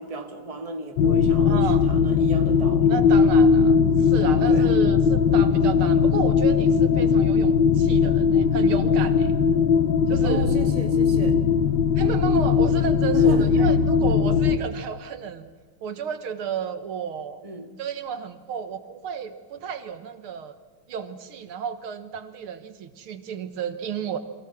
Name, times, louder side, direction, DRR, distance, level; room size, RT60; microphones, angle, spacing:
voice 1, 0.0-2.9 4.5-4.7 10.2-11.4 13.1-13.7 14.5-14.7 17.4-17.8, right 3 dB, 15° right, 5 dB, 1.7 m, -35 dB
sound 1, 1.0-14.6, left 6 dB, 60° left, 1.6 m, -19 dB
voice 2, 1.5-1.9 2.9-9.4 10.1-10.5 12.0-15.5 15.8-17.4 17.8-20.5 20.9-24.2, right 7 dB, 75° right, 10 dB, 2.2 m, -32 dB
29.5 x 23.5 x 6.0 m, 1.4 s
omnidirectional pair, 2.4 m